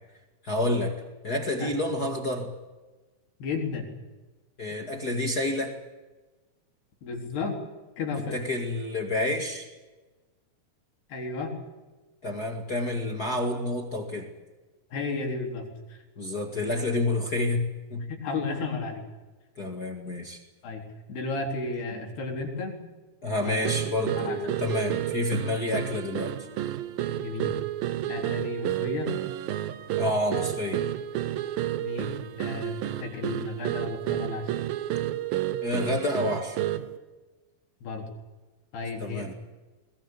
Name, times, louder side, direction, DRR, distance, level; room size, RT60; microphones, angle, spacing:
voice 1, 0.4-0.9 1.2-2.5 4.6-5.7 8.3-9.7 12.2-14.3 16.2-18.0 19.6-20.4 23.2-26.3 30.0-30.8 35.6-36.6 39.0-39.3, left 2 dB, 35° left, 3 dB, 1.8 m, -29 dB
voice 2, 3.4-3.9 7.0-7.6 8.0-8.4 11.1-11.5 14.9-16.0 18.1-19.0 20.6-20.8 21.1-22.8 23.4-23.7 24.2-24.4 27.2-27.5 28.1-29.1 31.8-32.1 32.4-34.5 37.8-38.1 38.7-39.3, left 3 dB, 80° left, 2 dB, 5.9 m, -33 dB
sound 1, 23.6-37.0, right 13 dB, 75° right, 2.7 m, -31 dB
21.5 x 20.5 x 8.7 m, 1.2 s
omnidirectional pair, 4.6 m